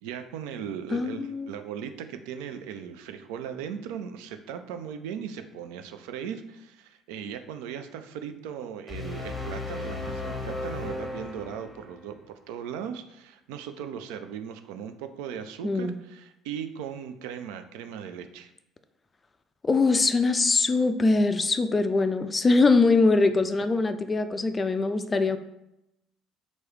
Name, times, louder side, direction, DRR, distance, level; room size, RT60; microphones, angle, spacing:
voice 1, 0.0-18.5, right 8 dB, 65° right, 8 dB, 0.3 m, -38 dB
voice 2, 0.9-1.5 15.6-16.0 19.6-25.4, left 3 dB, 25° left, 9 dB, 0.3 m, -22 dB
sound 1, 8.9-12.1, left 2 dB, 5° left, 0.8 m, -35 dB
3.0 x 2.7 x 4.5 m, 0.85 s
figure-of-eight pair, 55°, 0 cm